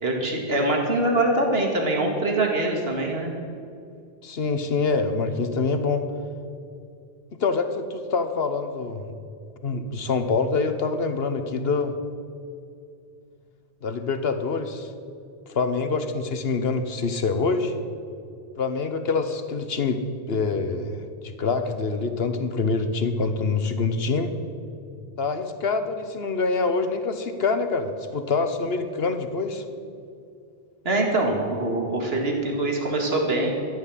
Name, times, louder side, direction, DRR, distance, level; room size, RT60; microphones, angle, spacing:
voice 1, 0.0-3.4 30.8-33.5, right 2 dB, 70° right, 1 dB, 2.3 m, -24 dB
voice 2, 4.2-6.0 7.3-9.1 9.6-11.9 13.8-14.9 15.5-17.8 18.6-24.4 25.2-29.6, left 4 dB, 70° left, 9 dB, 1.3 m, -25 dB
13.5 x 10.5 x 7.5 m, 2.4 s
omnidirectional pair, 1.1 m